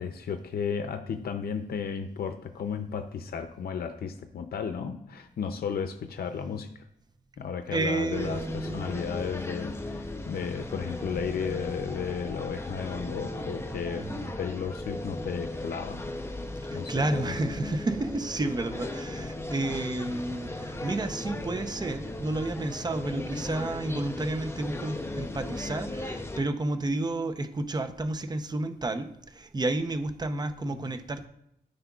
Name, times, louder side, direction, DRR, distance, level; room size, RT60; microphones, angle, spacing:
voice 1, 0.0-6.8 7.4-16.1 16.7-17.4 30.7-30.9, left 6 dB, 70° left, 7 dB, 0.6 m, -34 dB
voice 2, 7.7-9.1 13.9-14.4 16.6-31.3, right 2 dB, 25° right, 8 dB, 0.7 m, -31 dB
sound 1, 8.1-26.4, left 2 dB, 15° left, 0.6 m, -37 dB
13.5 x 5.0 x 2.4 m, 0.78 s
cardioid pair, 95°, 16 cm